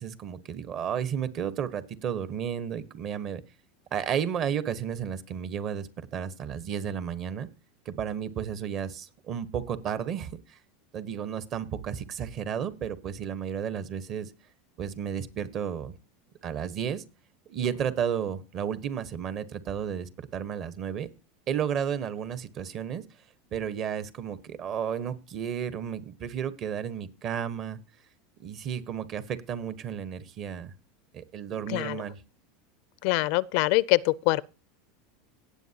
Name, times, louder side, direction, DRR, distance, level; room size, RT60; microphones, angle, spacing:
voice 1, 0.0-3.4 3.9-7.5 7.8-10.6 10.9-14.3 14.8-16.0 16.4-17.0 17.5-21.1 21.5-23.0 23.5-27.8 28.4-30.7 31.1-32.2, right 8 dB, 45° right, 1.2 m, -32 dB
voice 2, 31.7-32.0 33.0-34.4, left 21 dB, 65° left, 0.4 m, -24 dB
18.0 x 7.6 x 2.9 m
supercardioid pair, 110°, 0 cm